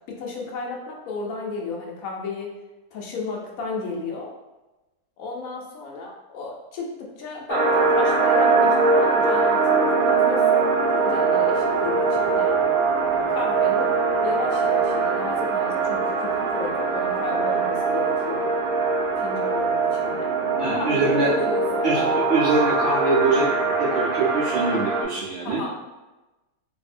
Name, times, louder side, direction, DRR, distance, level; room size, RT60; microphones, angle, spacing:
voice 1, 0.1-2.5 2.9-4.3 5.2-12.6 13.3-18.5 19.2-20.3 20.7-22.2 25.4-25.7, left 3 dB, 70° left, -1 dB, 1.0 m, -33 dB
sound 1, 7.5-25.0, right 4 dB, 85° right, 1.2 m, -22 dB
voice 2, 20.6-21.3 21.8-23.5 23.8-25.6, right 3 dB, 50° right, -11 dB, 1.0 m, -23 dB
2.7 x 2.6 x 2.5 m, 1.1 s
omnidirectional pair, 1.6 m